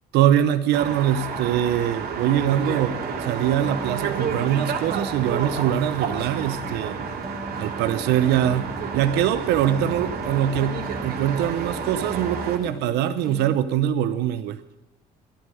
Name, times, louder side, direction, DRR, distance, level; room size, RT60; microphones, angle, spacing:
voice 1, 0.1-7.0 7.6-8.6 8.9-14.6, right 10 dB, 85° right, 11 dB, 0.8 m, -23 dB
sound 1, 0.7-12.6, right 6 dB, 65° right, 2.7 m, -30 dB
sound 2, 2.9-13.6, right 1 dB, ahead, 1.7 m, -40 dB
11.5 x 11.0 x 10.0 m, 0.94 s
cardioid pair, 110°, 17 cm